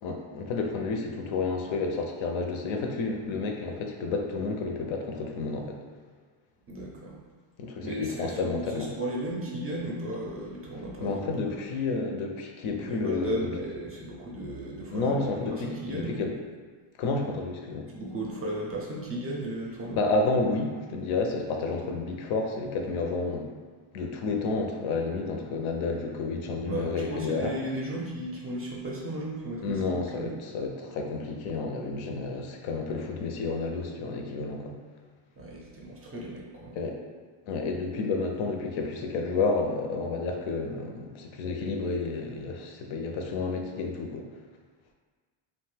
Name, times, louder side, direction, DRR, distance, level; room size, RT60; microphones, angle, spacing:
voice 1, 0.0-5.8 7.6-8.9 11.0-13.6 14.9-16.3 17.0-17.9 19.9-23.5 23.9-27.5 29.6-34.8 36.8-37.0 37.5-44.3, left 3 dB, 75° left, 2 dB, 0.6 m, -30 dB
voice 2, 6.7-7.2 7.8-11.6 12.6-16.3 17.9-20.0 26.6-30.3 35.4-36.8, right 1 dB, 30° right, -3 dB, 0.4 m, -35 dB
2.6 x 2.1 x 3.2 m, 1.5 s
cardioid pair, 120°, 49 cm